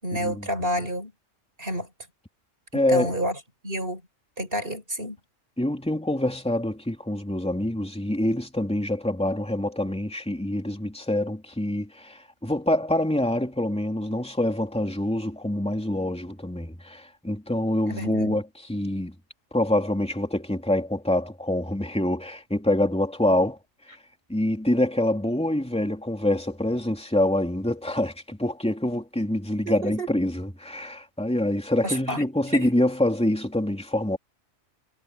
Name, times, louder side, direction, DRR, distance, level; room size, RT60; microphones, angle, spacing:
voice 1, 0.0-1.1 1.6-1.9 2.9-3.4 3.6-4.0 4.4-5.2 17.9-18.4 29.7-30.1 31.8-32.2 32.5-32.7, equal, 45° right, 5.3 m, -29 dB
voice 2, 2.7-3.2 5.6-19.1 19.5-23.6 24.3-34.2, left 1 dB, 5° left, 3.0 m, -26 dB
omnidirectional pair, 1.3 m